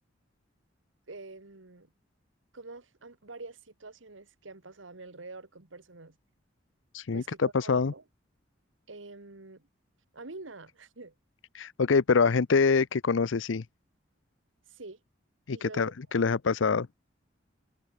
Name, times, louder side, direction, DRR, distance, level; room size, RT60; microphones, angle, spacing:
voice 1, 1.1-1.9 2.5-6.2 7.1-8.0 8.9-9.7 10.1-11.1 14.7-15.0 15.5-15.9, right 3 dB, 90° right, 1.8 m, -46 dB
voice 2, 6.9-7.9 11.5-13.6 15.5-16.9, left 5 dB, 80° left, 0.6 m, -25 dB
head